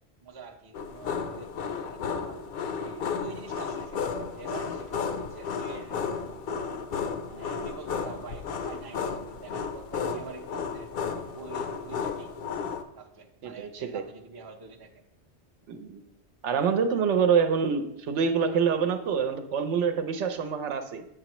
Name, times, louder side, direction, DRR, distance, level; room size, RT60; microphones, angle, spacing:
voice 1, 0.2-2.4 2.8-6.0 6.4-6.8 7.3-10.9 11.4-12.3 12.9-15.0, right 4 dB, 30° right, 4 dB, 0.5 m, -46 dB
sound 1, 0.7-12.8, left 6 dB, 60° left, 0.7 m, -33 dB
voice 2, 13.4-14.0 15.7-16.0 16.4-21.1, right 6 dB, 85° right, 7 dB, 1.0 m, -26 dB
7.6 x 6.4 x 3.0 m, 0.82 s
omnidirectional pair, 1.2 m